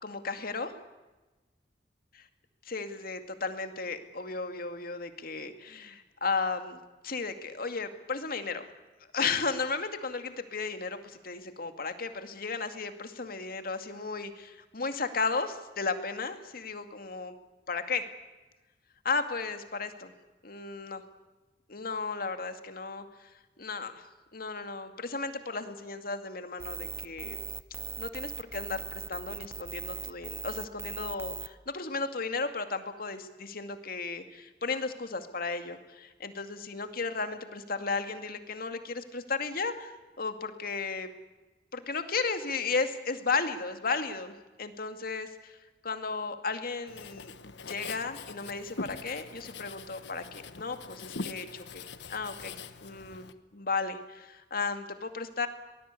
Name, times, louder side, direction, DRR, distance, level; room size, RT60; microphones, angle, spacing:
voice 1, 0.0-0.7 2.7-8.6 9.1-17.3 17.7-18.0 19.0-20.1 20.4-21.0 21.7-23.3 23.6-24.1 24.3-27.4 28.0-41.1 41.7-45.6 45.8-47.3 47.7-52.5 52.8-55.5, left 4 dB, 55° left, 8 dB, 2.3 m, -34 dB
sound 1, 26.6-31.5, right 4 dB, 15° right, 0.8 m, -39 dB
Writing, 46.9-53.3, left 4 dB, 90° left, 1.3 m, -43 dB
24.0 x 19.5 x 8.4 m, 1.1 s
head